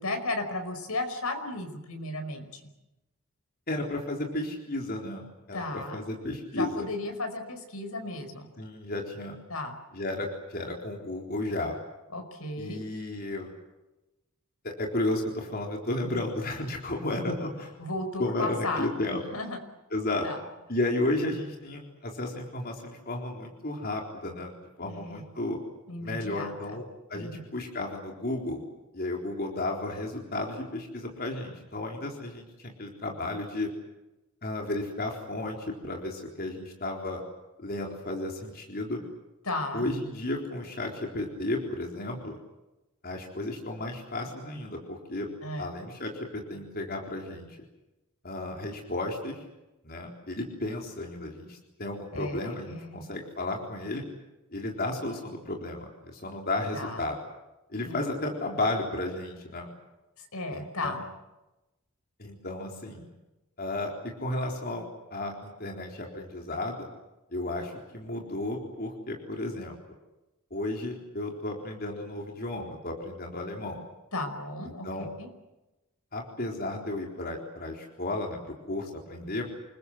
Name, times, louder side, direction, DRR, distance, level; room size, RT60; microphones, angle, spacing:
voice 1, 0.0-2.6 5.5-6.0 6.5-8.5 9.5-9.8 12.1-12.8 17.8-18.9 19.1-19.6 20.2-20.4 24.8-25.2 25.9-26.8 27.1-27.4 39.5-39.9 45.4-45.7 52.1-53.0 56.7-57.0 57.9-58.0 60.2-61.0 74.1-74.9 75.2-75.3, left 2 dB, 85° left, 6 dB, 5.3 m, -34 dB
voice 2, 3.7-6.9 8.6-9.4 9.9-11.8 12.6-13.5 14.6-17.7 18.2-19.2 19.9-20.3 20.7-24.5 24.8-25.6 26.0-26.8 27.1-28.6 28.9-33.7 34.4-37.2 37.6-39.0 39.7-42.4 43.0-45.3 45.6-47.5 48.2-49.4 49.8-54.0 54.5-57.2 57.7-59.7 60.5-61.0 62.2-63.1 63.6-63.9 64.2-64.9 65.1-66.9 67.3-69.8 70.5-73.8 74.8-75.1 76.1-78.4 78.7-79.5, left 2 dB, 45° left, 1 dB, 4.0 m, -33 dB
28.0 x 21.5 x 8.0 m, 0.99 s
head